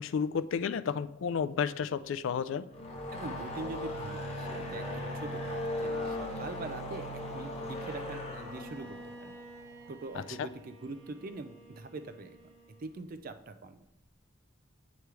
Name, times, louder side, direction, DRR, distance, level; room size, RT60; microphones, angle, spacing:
voice 1, 0.0-2.6 10.4-10.5, left 6 dB, 65° left, 13 dB, 0.3 m, -31 dB
sound 1, 2.6-10.0, left 1 dB, 30° left, 1.0 m, -38 dB
voice 2, 3.1-9.4 9.9-12.4 12.8-13.9, right 3 dB, 45° right, 9 dB, 0.4 m, -43 dB
Bowed string instrument, 8.2-13.2, right 2 dB, 70° right, 0.8 m, -51 dB
8.0 x 3.1 x 4.7 m, 0.84 s
head